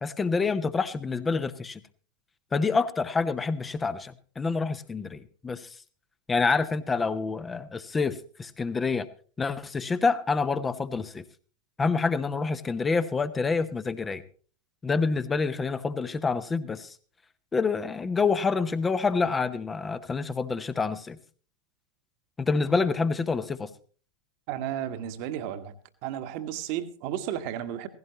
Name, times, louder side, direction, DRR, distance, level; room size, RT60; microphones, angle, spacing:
voice 1, 0.0-1.8 2.5-5.7 6.3-9.1 9.4-11.2 11.8-14.2 14.8-16.9 17.5-21.2 22.4-23.7, left 4 dB, 15° left, 12 dB, 0.8 m, -27 dB
voice 2, 24.5-25.7 26.0-27.9, right 11 dB, 45° right, 9 dB, 1.3 m, -33 dB
16.5 x 16.0 x 3.0 m, 0.40 s
figure-of-eight pair, 90°, 0 cm